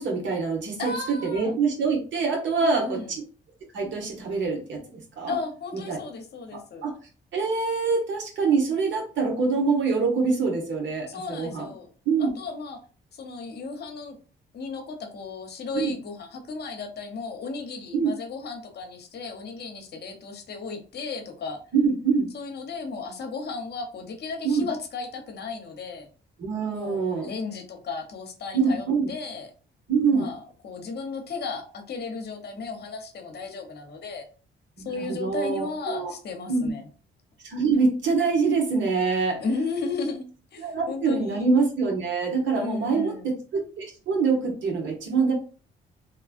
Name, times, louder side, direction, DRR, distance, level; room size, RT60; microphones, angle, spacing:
voice 1, 0.0-3.0 3.7-5.3 5.9-6.0 6.5-6.9 7.3-11.7 12.0-12.3 15.7-15.9 17.9-18.1 21.7-22.3 24.4-24.7 26.4-27.3 28.5-29.1 29.9-30.3 34.8-36.1 36.5-36.7 37.4-39.4 40.6-45.3, right 4 dB, 70° right, 0 dB, 1.2 m, -25 dB
voice 2, 0.8-1.6 2.6-3.1 5.3-6.8 11.1-11.9 12.2-12.8 13.1-14.2 14.5-21.6 22.3-26.1 26.7-29.5 30.1-34.2 34.8-36.9 39.4-40.3 40.5-41.4 42.5-43.3, left 4 dB, 55° left, 4 dB, 0.8 m, -35 dB
3.0 x 2.3 x 2.5 m, 0.37 s
cardioid pair, 90°, 20 cm